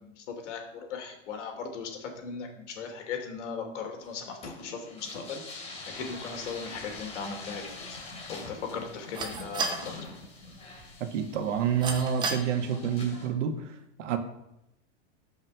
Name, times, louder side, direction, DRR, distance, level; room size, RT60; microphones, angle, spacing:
voice 1, 0.0-8.0 8.3-10.0, left 5 dB, 70° left, 4 dB, 2.9 m, -38 dB
sound 1, 4.0-13.3, left 3 dB, 15° left, 2.6 m, -44 dB
sound 2, 6.0-12.4, right 4 dB, 10° right, 0.7 m, -39 dB
voice 2, 11.0-13.7 14.0-14.2, right 8 dB, 75° right, 7 dB, 1.7 m, -28 dB
12.5 x 5.8 x 6.9 m, 0.83 s
supercardioid pair, 170°, 37 cm